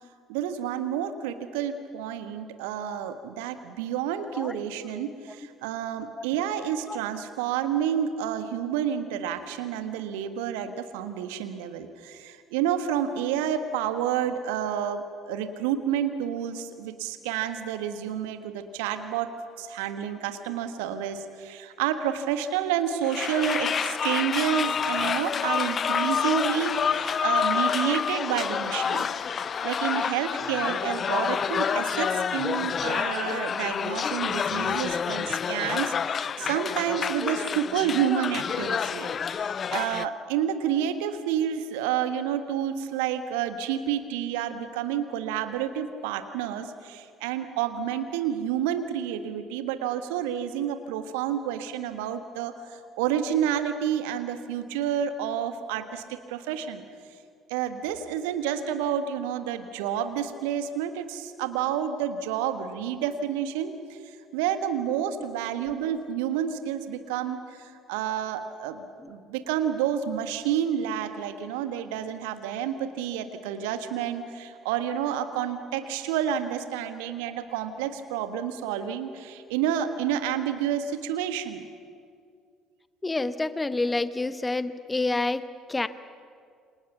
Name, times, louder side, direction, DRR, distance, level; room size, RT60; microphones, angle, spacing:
voice 1, 0.3-56.8 57.5-81.6, right 9 dB, 70° right, 9 dB, 1.5 m, -29 dB
sound 1, 23.0-40.1, left 7 dB, 40° left, 0.6 m, -28 dB
voice 2, 83.0-85.9, left 2 dB, 20° left, 12 dB, 1.1 m, -28 dB
28.5 x 25.5 x 6.0 m, 2.2 s
figure-of-eight pair, 55°, 0 cm